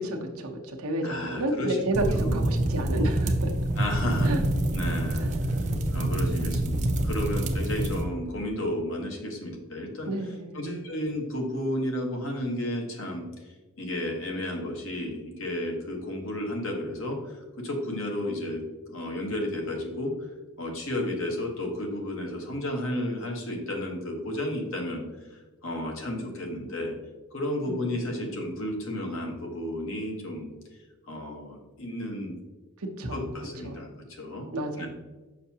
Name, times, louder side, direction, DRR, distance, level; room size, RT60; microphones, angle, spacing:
voice 1, 0.0-3.5 4.2-4.4 10.1-10.8 27.7-27.8 32.8-33.4 33.6-33.8 34.5-34.9, right 1 dB, 75° right, 2 dB, 0.9 m, -31 dB
voice 2, 1.0-2.6 3.8-4.4 4.7-5.3 5.9-10.1 10.5-13.3 13.8-20.3 20.6-27.0 27.3-30.5 31.1-32.3 33.1-34.5 34.8-34.9, left 1 dB, 60° left, 1 dB, 1.2 m, -32 dB
sound 1, 1.9-8.0, right 1 dB, 35° right, 0.5 m, -26 dB
6.6 x 5.7 x 2.8 m, 1.2 s
head